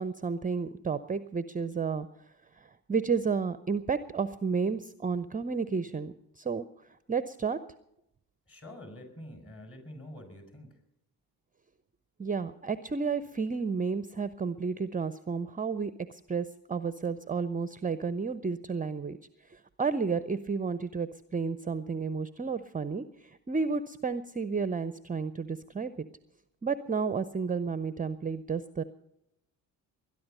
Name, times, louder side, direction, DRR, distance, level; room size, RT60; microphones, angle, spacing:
voice 1, 0.0-2.1 2.6-6.7 7.1-7.6 12.2-19.2 19.5-26.1 26.6-28.8, right 5 dB, 15° right, 14 dB, 0.6 m, -32 dB
voice 2, 8.5-10.8, left 1 dB, 25° left, 4 dB, 6.2 m, -46 dB
21.0 x 11.0 x 5.4 m, 0.82 s
figure-of-eight pair, 45°, 49 cm